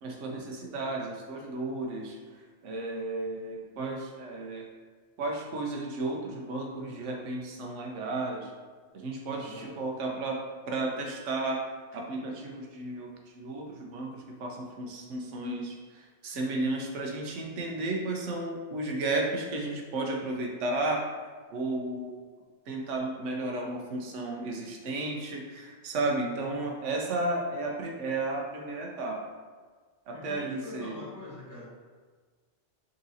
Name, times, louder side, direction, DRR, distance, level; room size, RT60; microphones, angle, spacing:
voice 1, 0.0-4.7 5.2-8.5 8.9-10.4 10.7-11.6 11.9-21.0 21.5-22.2 22.7-29.2 30.1-31.0, right 2 dB, 85° right, 0 dB, 1.0 m, -33 dB
voice 2, 9.3-10.1 26.5-26.6 30.1-31.7, left 2 dB, 15° left, -9 dB, 0.9 m, -45 dB
3.9 x 3.7 x 2.7 m, 1.5 s
omnidirectional pair, 1.2 m